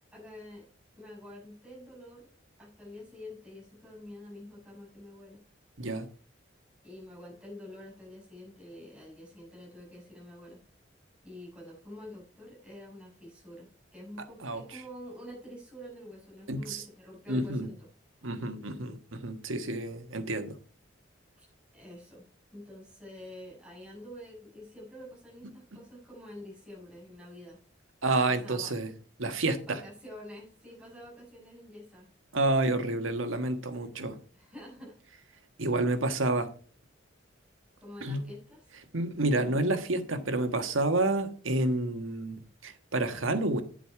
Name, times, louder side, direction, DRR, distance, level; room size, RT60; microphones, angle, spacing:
voice 1, 0.1-0.6 1.0-2.3 2.6-5.4 6.8-10.6 11.2-17.9 21.4-21.5 21.7-22.3 22.5-27.6 28.0-28.7 29.7-32.1 34.3-35.0 37.8-38.6, left 1 dB, 5° right, 6.2 m, -47 dB
voice 2, 14.4-14.8 16.5-16.8 17.3-17.7 18.2-20.6 28.0-28.9 29.2-29.8 32.3-34.2 35.6-36.5 38.0-38.3 38.9-43.6, right 2 dB, 85° right, 1.4 m, -29 dB
9.8 x 8.0 x 4.8 m
head